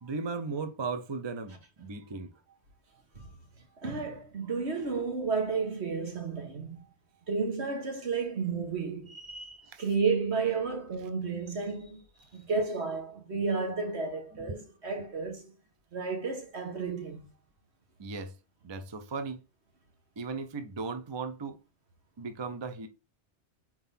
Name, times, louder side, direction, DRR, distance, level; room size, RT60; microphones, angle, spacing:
voice 1, 0.0-2.3 9.6-9.8 14.3-14.7 18.0-18.4 18.6-19.4 20.2-21.6 22.2-22.9, right 4 dB, 30° right, 0.5 m, -37 dB
voice 2, 3.8-6.8 7.3-12.0 12.3-15.5 15.9-17.3, right 4 dB, 70° right, 1.7 m, -32 dB
4.4 x 3.8 x 5.6 m
omnidirectional pair, 1.1 m